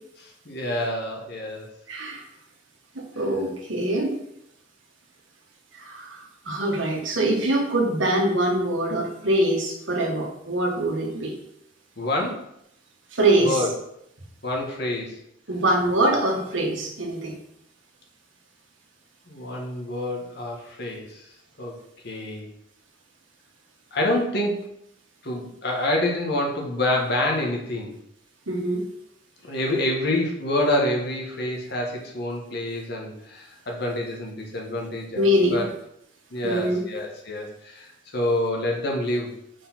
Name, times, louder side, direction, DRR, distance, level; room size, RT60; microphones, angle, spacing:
voice 1, 0.2-1.7 12.0-12.4 13.4-13.7 14.4-15.2 19.3-21.2 21.6-21.8 22.0-22.5 23.9-24.6 25.2-27.9 29.4-35.7 36.3-39.3, left 1 dB, 55° left, 0 dB, 1.5 m, -27 dB
voice 2, 1.9-2.2 2.9-4.2 5.7-11.4 13.1-13.6 15.5-17.3 28.5-28.9 35.1-35.7 36.4-36.8, right 1 dB, 80° right, 1 dB, 1.5 m, -23 dB
4.9 x 4.6 x 5.9 m, 0.77 s
head